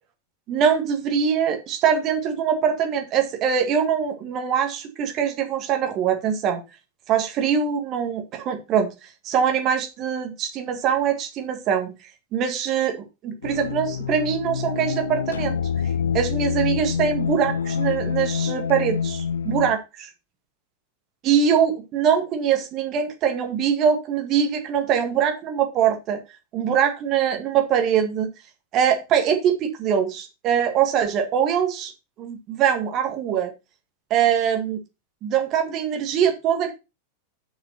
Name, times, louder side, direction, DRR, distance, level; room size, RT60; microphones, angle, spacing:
voice 1, 0.5-6.6 7.1-11.9 12.3-15.6 16.1-20.1 21.2-26.2 26.5-28.3 28.7-31.9 32.2-33.5 34.1-34.8 35.2-36.7, right 8 dB, 35° right, 4 dB, 1.8 m, -23 dB
sound 1, 13.4-19.8, left 7 dB, 70° left, 0.5 m, -26 dB
7.2 x 5.4 x 5.8 m, 0.27 s
figure-of-eight pair, 90°, 0 cm